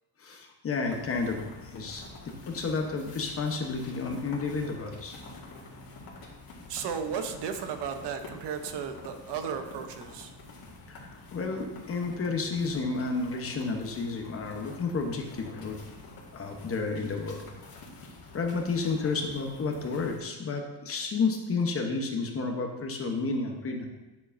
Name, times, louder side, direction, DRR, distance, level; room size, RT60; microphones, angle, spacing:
voice 1, 0.2-5.2 10.9-15.8 16.3-17.4 18.0-23.9, left 4 dB, 35° left, 3 dB, 1.0 m, -31 dB
sound 1, 0.8-20.2, left 2 dB, 60° left, 2.0 m, -47 dB
voice 2, 6.7-10.3, right 7 dB, 75° right, 7 dB, 0.8 m, -34 dB
9.5 x 6.9 x 2.6 m, 1.1 s
cardioid pair, 150°, 40 cm